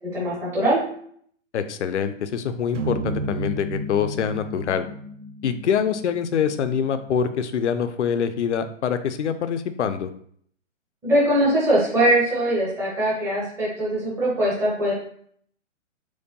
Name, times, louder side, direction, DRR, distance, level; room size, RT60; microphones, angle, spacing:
voice 1, 0.0-0.8 11.0-14.9, right 1 dB, 5° right, -7 dB, 0.7 m, -21 dB
voice 2, 1.5-4.8 5.4-10.1, left 7 dB, 65° left, 9 dB, 0.5 m, -25 dB
sound 1, 2.7-7.1, right 1 dB, 70° right, 0.6 m, -33 dB
4.5 x 2.2 x 2.7 m, 0.62 s
figure-of-eight pair, 130°, 38 cm